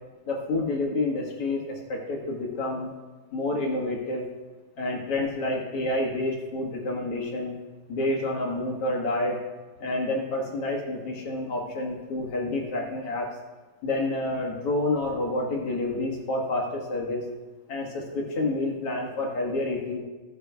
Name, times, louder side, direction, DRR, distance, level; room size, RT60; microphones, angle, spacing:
voice 1, 0.3-2.9 3.3-4.2 4.8-7.6 7.9-9.4 9.8-13.3 13.8-17.2 17.7-20.0, left 2 dB, 55° left, -1 dB, 2.3 m, -28 dB
16.5 x 8.5 x 2.3 m, 1.2 s
omnidirectional pair, 3.4 m